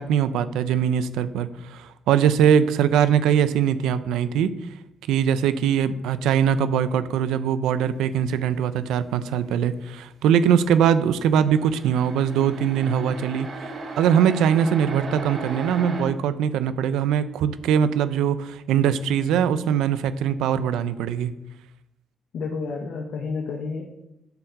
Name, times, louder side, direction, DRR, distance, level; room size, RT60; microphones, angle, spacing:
voice 1, 0.0-4.5 5.1-13.7 14.0-21.3, right 8 dB, 90° right, 13 dB, 0.6 m, -22 dB
sound 1, 11.3-16.0, right 3 dB, 55° right, 2.8 m, -36 dB
voice 2, 22.3-23.8, left 4 dB, 75° left, 1 dB, 1.4 m, -30 dB
11.0 x 4.6 x 6.6 m, 0.89 s
cardioid pair, 90°, 0 cm